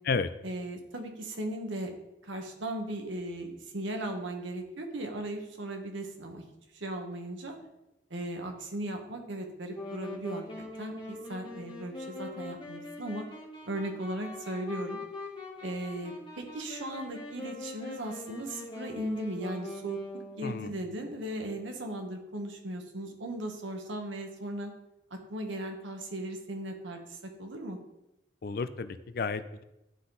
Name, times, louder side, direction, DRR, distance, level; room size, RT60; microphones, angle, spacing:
voice 1, 0.4-1.9 2.2-6.4 6.7-7.6 8.1-10.4 10.8-13.3 13.6-15.0 15.6-20.0 20.4-24.7 25.1-27.8, right 1 dB, 80° right, 4 dB, 1.2 m, -37 dB
Wind instrument woodwind instrument, 9.7-20.6, left 2 dB, 25° left, 1.3 m, -42 dB
voice 2, 28.4-29.6, left 4 dB, 50° left, 12 dB, 0.4 m, -32 dB
11.5 x 3.9 x 3.8 m, 0.92 s
head